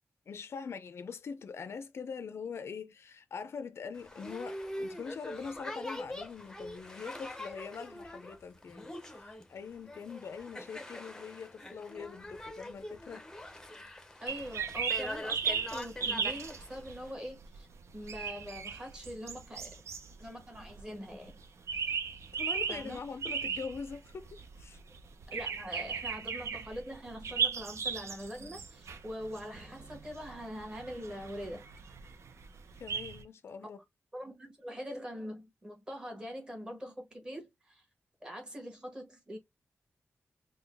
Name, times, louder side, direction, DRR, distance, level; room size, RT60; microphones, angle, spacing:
voice 1, 0.3-13.3 22.3-24.8 32.8-33.8, left 5 dB, 60° left, 0.4 m, -43 dB
Boat Water vehicle, 3.9-17.1, left 1 dB, 10° left, 0.6 m, -43 dB
voice 2, 14.2-17.7 17.9-19.7 20.2-21.4 22.7-23.0 25.3-31.6 34.1-37.8 38.2-39.4, equal, 15° right, 1.3 m, -43 dB
sound 1, 14.3-33.2, right 6 dB, 75° right, 0.5 m, -37 dB
3.8 x 2.2 x 3.4 m
wide cardioid pair, 175°, 5 cm